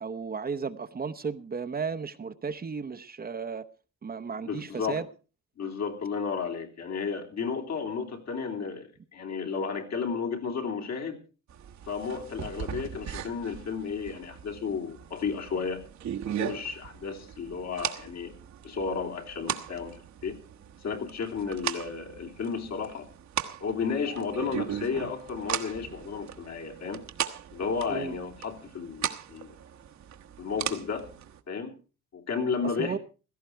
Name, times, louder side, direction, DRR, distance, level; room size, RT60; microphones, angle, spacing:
voice 1, 0.0-3.7 4.0-5.0 27.9-28.2 32.8-33.0, right 5 dB, 30° right, 0.8 m, -34 dB
voice 2, 4.4-5.0 5.6-11.2 11.9-15.8 16.2-18.3 18.6-20.4 20.8-23.1 23.6-27.0 27.5-29.5 30.4-31.1 31.5-31.7 32.1-33.0, left 5 dB, 60° left, 3.2 m, -33 dB
sound 1, 11.5-31.4, right 9 dB, 65° right, 1.4 m, -38 dB
16.5 x 14.0 x 4.5 m
cardioid pair, 90°, 30 cm